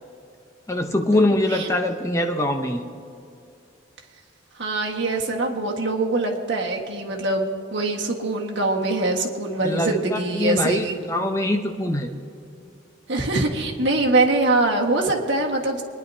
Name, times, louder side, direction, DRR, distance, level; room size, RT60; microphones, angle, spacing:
voice 1, 0.7-2.8 9.6-12.1, left 1 dB, 15° left, 4 dB, 0.7 m, -23 dB
voice 2, 4.6-10.9 13.1-15.8, right 2 dB, 65° right, 0 dB, 1.5 m, -23 dB
24.0 x 10.5 x 2.7 m, 2.5 s
head